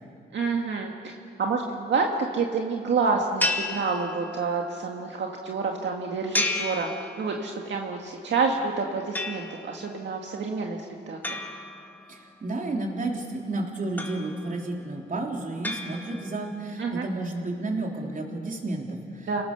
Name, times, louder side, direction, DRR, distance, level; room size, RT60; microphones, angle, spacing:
voice 1, 0.3-1.1 1.4-2.1 2.3-6.9 7.2-11.4 16.8-17.1 19.3-19.4, right 4 dB, 75° right, 1 dB, 1.9 m, -28 dB
sound 1, 3.4-4.6 6.3-7.6 9.1-9.9 11.2-12.4 14.0-14.7 15.6-16.5, left 2 dB, 10° left, 2.0 m, -32 dB
voice 2, 12.1-19.4, right 2 dB, 45° right, 0 dB, 3.7 m, -32 dB
30.0 x 18.5 x 6.9 m, 2.5 s
cardioid pair, 90°, 19 cm